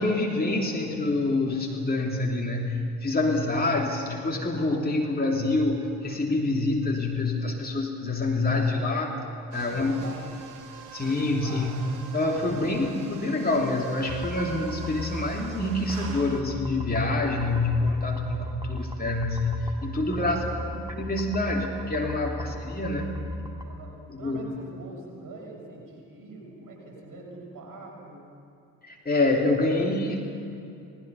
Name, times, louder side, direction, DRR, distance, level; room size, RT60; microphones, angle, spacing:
voice 1, 0.0-9.2 9.5-9.9 10.9-11.8 12.1-20.4 20.9-23.1 24.1-24.5 28.8-30.2, left 2 dB, 20° left, -1 dB, 3.0 m, -26 dB
sound 1, 9.5-16.4, right 5 dB, 70° right, 1.7 m, -44 dB
voice 2, 9.7-10.3 11.5-11.8 20.1-20.7 23.6-28.2, right 2 dB, 45° right, -1 dB, 6.8 m, -44 dB
sound 2, 14.1-23.8, left 1 dB, 10° right, 2.5 m, -36 dB
28.0 x 19.5 x 5.6 m, 2.7 s
figure-of-eight pair, 45°, 45 cm